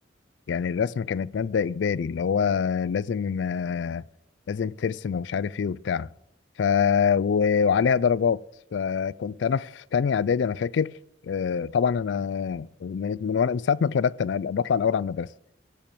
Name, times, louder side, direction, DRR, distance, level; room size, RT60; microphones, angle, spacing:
voice 1, 0.5-4.0 4.5-6.1 6.6-8.4 8.7-10.9 11.3-15.3, left 6 dB, 65° left, 0.3 m, -25 dB
13.0 x 5.8 x 8.6 m
head